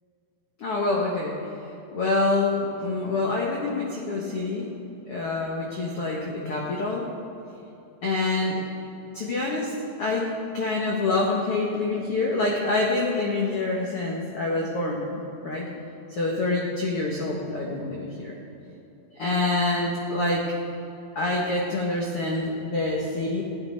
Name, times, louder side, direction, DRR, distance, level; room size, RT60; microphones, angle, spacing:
voice 1, 0.6-1.4 1.9-4.7 5.1-7.1 8.0-8.6 9.1-9.7 10.0-10.3 10.5-15.6 16.2-18.3 19.1-20.4 21.1-23.4, left 2 dB, 80° left, -2 dB, 1.2 m, -26 dB
16.0 x 11.5 x 4.6 m, 3.0 s
omnidirectional pair, 4.8 m